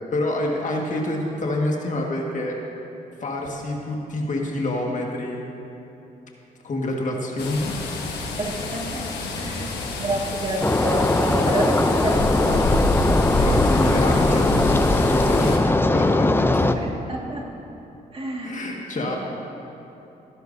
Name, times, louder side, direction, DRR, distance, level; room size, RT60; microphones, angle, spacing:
voice 1, 0.1-2.6 3.2-5.4 6.6-7.8 13.4-16.7 18.4-19.2, left 1 dB, 50° left, 0 dB, 1.8 m, -27 dB
sound 1, 7.4-15.6, left 2 dB, 90° left, 1.3 m, -27 dB
voice 2, 8.4-9.0 9.4-9.7 10.0-12.7 16.7-17.5 18.1-18.7 18.9-19.2, right 1 dB, 35° right, -1 dB, 1.9 m, -28 dB
sound 2, 10.6-16.8, left 2 dB, 15° left, 0.5 m, -20 dB
17.0 x 10.5 x 2.7 m, 3.0 s
supercardioid pair, 60°, 17 cm